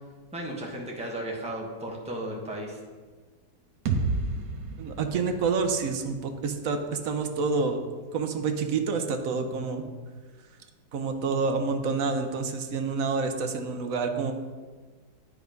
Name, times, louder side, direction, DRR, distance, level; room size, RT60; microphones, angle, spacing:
voice 1, 0.3-2.8, right 1 dB, 5° right, -1 dB, 1.1 m, -35 dB
sound 1, 3.9-7.7, right 3 dB, 90° right, 1.5 m, -33 dB
voice 2, 4.8-7.8 8.1-9.8 10.9-14.3, right 4 dB, 60° right, 6 dB, 1.1 m, -28 dB
9.9 x 4.7 x 5.2 m, 1.4 s
omnidirectional pair, 1.8 m